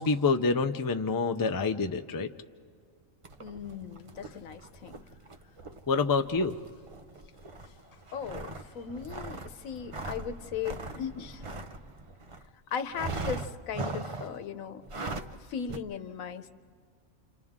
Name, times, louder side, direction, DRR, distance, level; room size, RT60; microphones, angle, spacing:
voice 1, 0.0-2.3 5.9-6.6, left 4 dB, 35° left, 7 dB, 0.3 m, -27 dB
sound 1, 3.2-12.5 12.9-14.4 14.8-15.4 15.7-15.8, right 3 dB, 35° right, 0.5 m, -40 dB
voice 2, 3.4-4.9 8.1-11.4 12.7-14.8 15.5-16.5, left 7 dB, 90° left, 9 dB, 1.2 m, -37 dB
29.0 x 28.0 x 3.6 m, 2.3 s
omnidirectional pair, 1.4 m